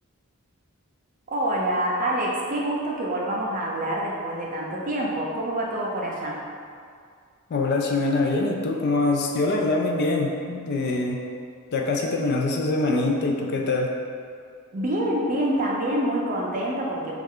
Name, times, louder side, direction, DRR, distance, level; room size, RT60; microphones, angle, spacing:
voice 1, 1.3-6.4 14.7-17.1, right 1 dB, 35° right, -3 dB, 0.5 m, -26 dB
voice 2, 7.5-11.2 11.7-13.9, left 2 dB, 50° left, 1 dB, 0.3 m, -24 dB
3.2 x 2.4 x 3.5 m, 2.2 s
head